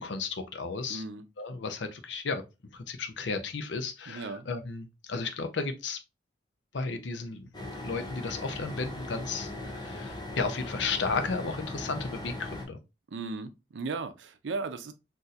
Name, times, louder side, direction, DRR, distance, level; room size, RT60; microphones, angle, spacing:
voice 1, 0.0-1.0 1.4-2.4 2.7-6.0 6.7-7.5 7.8-12.8, left 4 dB, 80° left, 0.6 m, -34 dB
voice 2, 0.9-1.2 4.1-4.5 13.1-14.9, right 4 dB, 85° right, 0.5 m, -36 dB
sound 1, 7.5-12.6, left 1 dB, 25° left, 0.6 m, -39 dB
4.1 x 2.7 x 2.4 m
head